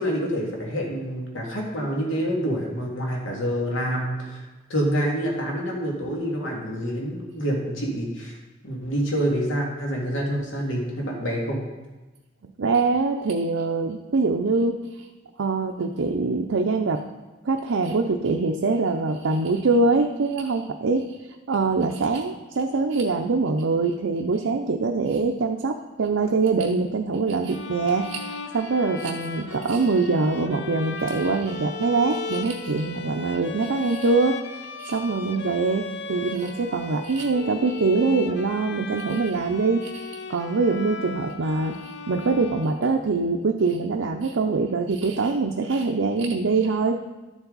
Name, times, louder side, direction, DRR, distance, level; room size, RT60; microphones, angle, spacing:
voice 1, 0.0-4.4 4.7-8.3 8.6-11.6, equal, 85° left, -2 dB, 2.3 m, -27 dB
voice 2, 12.6-15.1 15.4-17.0 17.4-21.2 21.5-34.4 34.8-47.0, right 3 dB, 85° right, 3 dB, 0.6 m, -24 dB
sound 1, 27.5-43.1, left 4 dB, 60° left, 0.6 m, -37 dB
12.0 x 7.1 x 4.0 m, 1.2 s
head